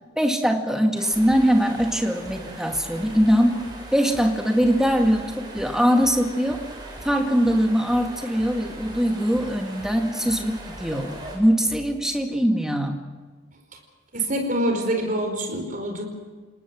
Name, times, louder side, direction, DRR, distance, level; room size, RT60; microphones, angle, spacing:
voice 1, 0.2-3.6 3.9-6.6 7.0-13.0, equal, 5° right, 3 dB, 2.1 m, -22 dB
sound 1, 0.9-11.4, right 2 dB, 20° right, 5.9 m, -41 dB
sound 2, 1.1-12.1, equal, 20° left, 6.3 m, -45 dB
voice 2, 14.1-16.0, right 1 dB, 40° right, 4 dB, 4.7 m, -25 dB
29.0 x 19.0 x 6.2 m, 1.4 s
head